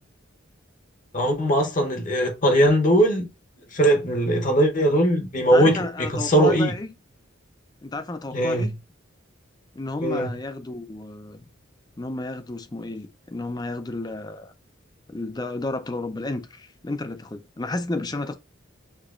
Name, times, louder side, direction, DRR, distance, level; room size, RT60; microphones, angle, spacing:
voice 1, 1.1-3.3 3.7-6.7 8.3-8.7 10.0-10.3, right 1 dB, 40° left, 0.9 m, -20 dB
voice 2, 5.4-6.9 7.8-8.7 9.8-11.5 12.0-14.5 15.1-18.4, left 2 dB, 20° left, 0.4 m, -32 dB
6.6 x 2.9 x 2.4 m
head